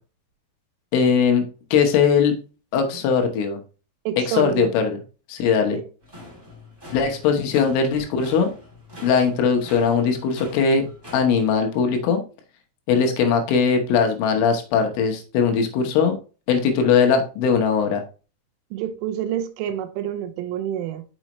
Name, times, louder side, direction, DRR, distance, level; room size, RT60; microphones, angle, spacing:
voice 1, 0.9-1.5 1.7-2.3 2.7-3.6 4.3-5.0 5.3-5.8 6.9-8.6 9.0-10.9 11.1-12.2 12.9-16.2 16.5-18.0, left 6 dB, 80° left, 3.5 m, -20 dB
voice 2, 4.1-4.7 5.7-5.9 18.7-21.0, right 10 dB, 80° right, 3.1 m, -28 dB
sound 1, 6.0-11.2, left 1 dB, 15° right, 0.8 m, -43 dB
6.3 x 6.1 x 3.0 m
omnidirectional pair, 5.7 m